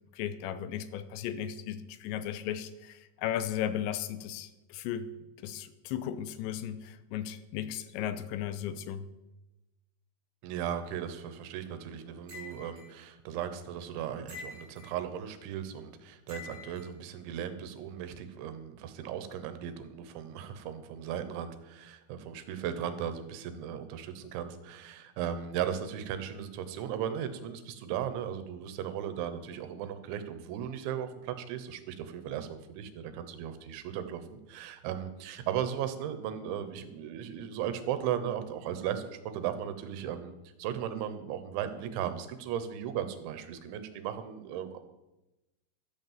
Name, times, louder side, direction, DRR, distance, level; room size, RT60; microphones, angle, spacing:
voice 1, 0.1-5.1 5.4-9.1, left 10 dB, 85° left, 12 dB, 2.9 m, -36 dB
voice 2, 10.4-40.3 40.6-44.9, right 9 dB, 90° right, 10 dB, 3.4 m, -36 dB
sound 1, 12.3-12.9 14.3-14.9 16.3-16.9, left 4 dB, 25° right, 3.3 m, -46 dB
13.0 x 8.2 x 7.3 m, 1.0 s
omnidirectional pair, 5.2 m